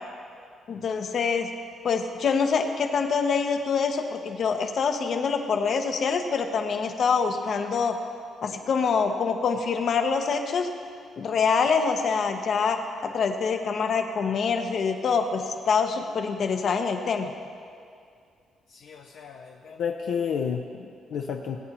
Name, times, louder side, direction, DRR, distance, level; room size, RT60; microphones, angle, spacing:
voice 1, 0.7-1.5 1.8-8.0 8.4-10.7 11.2-17.3, left 5 dB, 60° left, 5 dB, 0.9 m, -25 dB
voice 2, 18.7-21.6, left 7 dB, 75° left, 1 dB, 0.6 m, -31 dB
19.0 x 8.8 x 3.0 m, 2.3 s
cardioid pair, 90°, 0 cm